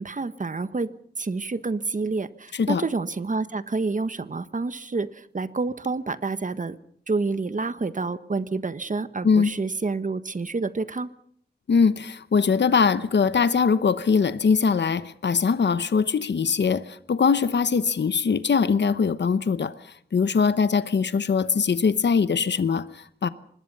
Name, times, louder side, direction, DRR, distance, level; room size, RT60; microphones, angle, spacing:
voice 1, 0.0-6.7 7.1-11.1, right 3 dB, 45° right, 1.4 m, -28 dB
voice 2, 2.5-2.8 9.2-9.5 11.7-23.3, left 5 dB, 75° left, 0.9 m, -22 dB
25.0 x 20.5 x 5.6 m
wide cardioid pair, 100°, 18 cm